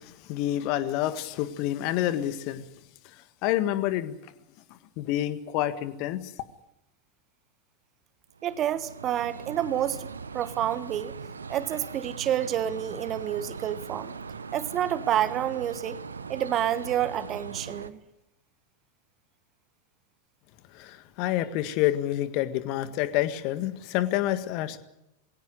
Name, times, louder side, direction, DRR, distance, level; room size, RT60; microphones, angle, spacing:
voice 1, 0.0-2.6 3.0-4.2 4.7-6.3 20.7-24.8, left 13 dB, 45° left, 1.7 m, -28 dB
sound 1, 8.3-17.9, right 5 dB, 75° right, 1.0 m, -40 dB
voice 2, 8.4-10.1 10.3-11.1 11.5-14.1 14.5-16.0 16.3-18.0, right 11 dB, 30° right, 1.4 m, -28 dB
22.5 x 17.0 x 9.8 m
figure-of-eight pair, 90°, 0 cm